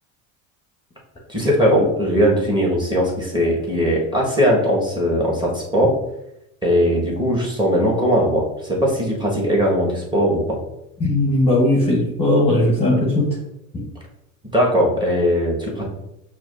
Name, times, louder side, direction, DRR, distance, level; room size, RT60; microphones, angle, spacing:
voice 1, 1.3-6.0 6.6-10.6 14.5-15.8, equal, 10° right, -3 dB, 1.5 m, -19 dB
voice 2, 11.0-13.4 13.7-13.8, left 1 dB, 15° left, -3 dB, 1.0 m, -18 dB
5.9 x 2.8 x 2.6 m, 0.82 s
supercardioid pair, 100°, 42 cm